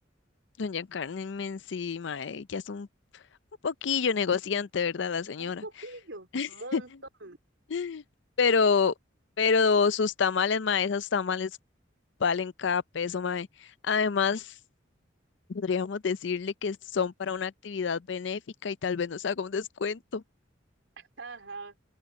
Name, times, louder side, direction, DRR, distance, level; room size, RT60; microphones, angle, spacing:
voice 1, 0.6-2.9 3.6-5.6 6.3-6.8 7.7-8.0 8.4-8.9 9.4-11.5 12.2-14.5 15.5-20.2, left 5 dB, 65° left, 0.5 m, -28 dB
voice 2, 5.4-6.9 7.2-7.4 21.0-21.8, right 2 dB, 75° right, 3.6 m, -42 dB
open air
head